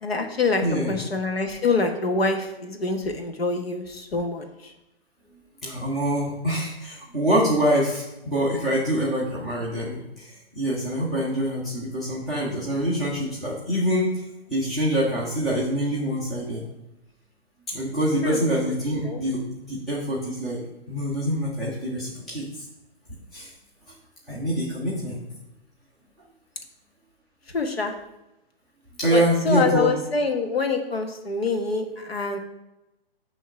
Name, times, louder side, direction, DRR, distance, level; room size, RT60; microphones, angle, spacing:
voice 1, 0.0-0.6 0.9-4.4 18.2-18.4 19.0-19.2 27.5-27.9 29.1-32.4, left 4 dB, 75° left, 4 dB, 1.2 m, -25 dB
voice 2, 0.6-1.0 5.6-14.1 14.5-16.6 17.7-20.6 20.9-22.4 23.3-23.5 24.3-25.2 29.0-30.0, equal, ahead, -10 dB, 0.3 m, -25 dB
7.4 x 3.0 x 5.7 m, 0.93 s
figure-of-eight pair, 130°, 30 cm